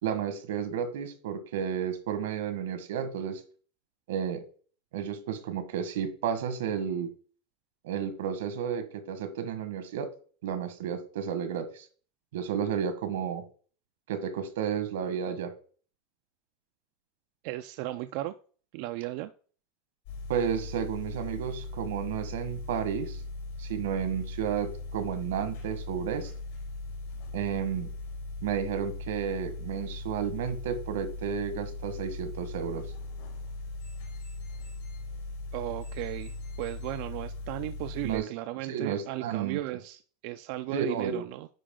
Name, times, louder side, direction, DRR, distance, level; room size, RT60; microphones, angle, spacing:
voice 1, 0.0-3.4 4.1-4.4 4.9-7.1 7.8-10.1 10.4-11.9 12.3-13.4 14.1-15.5 20.3-23.2 23.6-26.3 27.3-27.9 28.4-32.9 38.0-38.3 38.7-39.6 40.7-41.2, right 8 dB, 85° right, 1.3 m, -32 dB
voice 2, 17.4-18.4 18.7-19.3 35.5-41.5, right 16 dB, 45° right, 0.3 m, -36 dB
sound 1, 20.1-38.2, left 2 dB, 70° left, 4.0 m, -39 dB
10.0 x 4.8 x 3.7 m
supercardioid pair, 175°, 0 cm